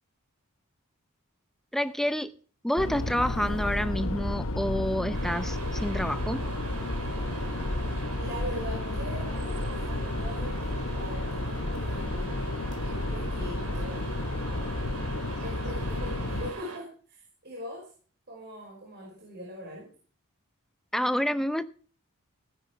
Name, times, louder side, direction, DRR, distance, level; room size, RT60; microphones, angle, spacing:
voice 1, 1.7-2.3 2.6-6.4 20.9-21.6, equal, ahead, 12 dB, 0.7 m, -28 dB
sound 1, 2.8-16.5, left 1 dB, 65° left, 1.2 m, -32 dB
sound 2, 5.1-16.8, right 3 dB, 75° right, 4.2 m, -41 dB
voice 2, 8.2-10.6 11.0-12.6 12.8-14.1 15.4-17.9 18.3-19.9, equal, 50° right, -2 dB, 5.2 m, -41 dB
17.5 x 9.9 x 4.5 m, 0.42 s
head